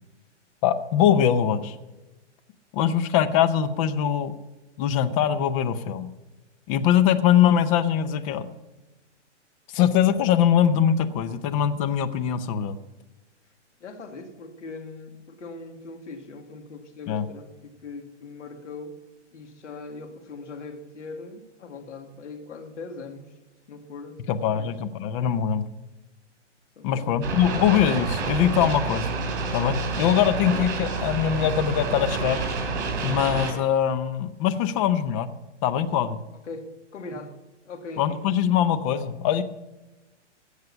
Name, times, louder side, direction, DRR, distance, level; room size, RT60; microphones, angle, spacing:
voice 1, 0.6-1.8 2.7-4.3 4.8-6.1 6.7-8.5 9.7-12.8 17.1-17.3 24.3-25.7 26.8-29.1 29.5-32.4 33.0-35.3 35.6-36.2 38.0-39.4, left 9 dB, 30° left, 12 dB, 0.7 m, -22 dB
voice 2, 13.8-19.0 19.3-23.4 23.7-24.7 26.8-27.2 36.4-37.4 37.7-38.2, left 3 dB, 75° left, 6 dB, 2.3 m, -40 dB
sound 1, 27.2-33.5, right 4 dB, 45° right, 4.8 m, -28 dB
16.5 x 6.6 x 5.8 m, 1.1 s
hypercardioid pair, 140°, 36 cm